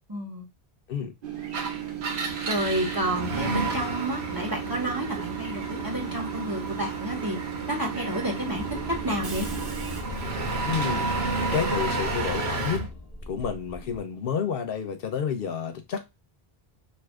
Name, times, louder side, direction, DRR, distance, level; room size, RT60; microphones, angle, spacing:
voice 1, 0.1-0.5 2.5-7.4 7.7-9.5, right 1 dB, 25° right, 0.7 m, -30 dB
Train / Subway metro underground, 1.2-10.0, right 10 dB, 60° right, 0.9 m, -36 dB
Engine, 1.4-12.9, right 3 dB, 80° right, 1.1 m, -32 dB
sound 1, 8.5-14.0, left 2 dB, 10° left, 0.8 m, -39 dB
voice 2, 10.7-11.1 11.5-12.9 13.3-16.1, left 7 dB, 65° left, 0.7 m, -30 dB
2.6 x 2.5 x 3.4 m
omnidirectional pair, 1.1 m